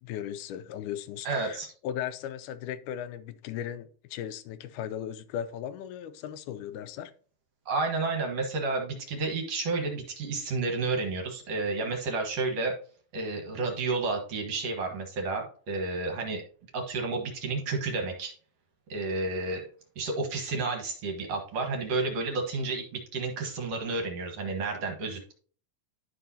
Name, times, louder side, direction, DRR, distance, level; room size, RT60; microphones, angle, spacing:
voice 1, 0.0-7.1, left 10 dB, 80° left, 2.0 m, -37 dB
voice 2, 1.2-1.7 7.7-12.7 13.1-16.4 16.7-18.3 18.9-19.6 20.0-25.3, right 3 dB, 55° right, 2.1 m, -31 dB
12.0 x 5.4 x 2.7 m
omnidirectional pair, 3.9 m